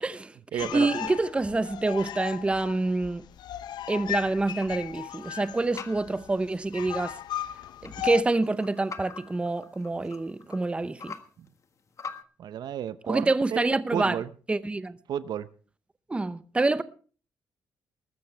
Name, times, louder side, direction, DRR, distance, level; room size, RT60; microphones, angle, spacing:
voice 1, 0.0-3.2 3.9-7.2 7.8-11.1 13.1-14.2 14.5-15.0 16.1-16.8, right 2 dB, 15° right, 0.7 m, -27 dB
voice 2, 0.5-0.9 12.4-14.3 15.1-15.5, right 9 dB, 70° right, 0.7 m, -32 dB
sound 1, 0.6-8.2, left 12 dB, 75° left, 0.6 m, -37 dB
sound 2, 3.3-12.2, left 5 dB, 45° left, 1.5 m, -46 dB
20.5 x 13.0 x 3.3 m
cardioid pair, 110°, 7 cm